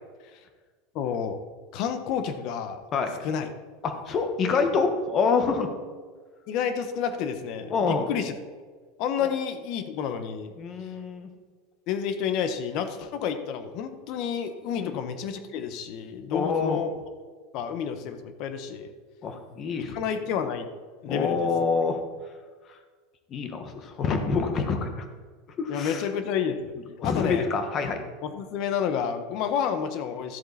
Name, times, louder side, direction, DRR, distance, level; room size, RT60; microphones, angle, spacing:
voice 1, 0.9-1.4 1.7-2.8 3.2-3.5 6.5-8.3 9.0-10.5 11.9-16.9 17.5-18.9 19.8-20.7 21.0-21.5 25.7-26.7 27.0-27.5 28.2-30.4, left 7 dB, 45° left, 9 dB, 1.2 m, -30 dB
voice 2, 3.8-5.7 7.7-8.1 9.2-9.3 10.6-11.3 14.8-15.0 16.3-16.8 19.2-20.0 21.1-22.0 23.3-25.0 25.6-26.0 27.0-28.0, left 5 dB, 30° left, 6 dB, 1.4 m, -26 dB
13.5 x 7.7 x 4.2 m, 1.5 s
supercardioid pair, 155°, 0 cm